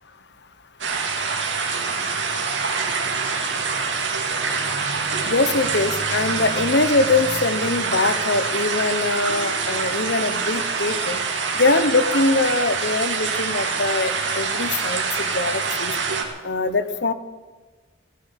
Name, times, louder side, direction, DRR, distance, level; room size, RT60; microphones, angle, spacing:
sound 1, 0.8-16.2, right 5 dB, 75° right, 2.3 m, -25 dB
voice 1, 5.2-11.2 11.5-15.9 16.4-17.1, left 3 dB, 60° left, 12 dB, 1.0 m, -22 dB
16.0 x 9.7 x 8.2 m, 1.4 s
head